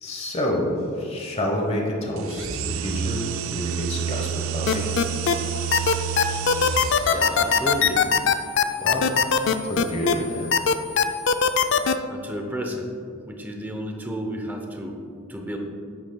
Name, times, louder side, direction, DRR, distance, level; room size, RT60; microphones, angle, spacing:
voice 1, 0.0-3.2 3.5-4.9 8.8-9.1 9.6-10.5, left 1 dB, 25° left, 0 dB, 1.0 m, -28 dB
sound 1, 2.2-7.4, right 8 dB, 60° right, 0.3 m, -29 dB
sound 2, 4.7-5.3 5.7-10.1 10.5-11.9, left 6 dB, 55° left, 0.3 m, -19 dB
voice 2, 7.1-8.0 11.6-12.9 13.2-15.0 15.3-15.6, equal, 10° right, 2 dB, 0.6 m, -32 dB
9.3 x 8.1 x 2.3 m, 2.5 s
head